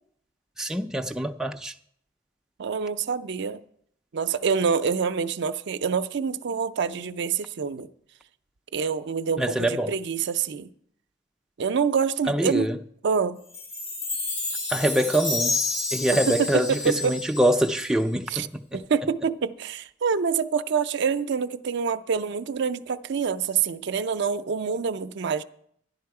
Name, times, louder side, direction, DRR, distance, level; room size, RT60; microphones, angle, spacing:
voice 1, 0.6-1.7 9.4-9.9 12.3-12.8 14.7-15.6 15.9-18.8, right 1 dB, 5° right, 0.4 m, -25 dB
voice 2, 2.6-3.6 4.1-7.9 8.7-10.7 11.6-12.7 13.0-13.4 16.3-17.1 18.3-18.5 18.7-25.4, right 6 dB, 65° right, 0.5 m, -26 dB
Chime, 13.5-18.0, left 3 dB, 80° left, 2.8 m, -30 dB
11.0 x 11.0 x 4.7 m
head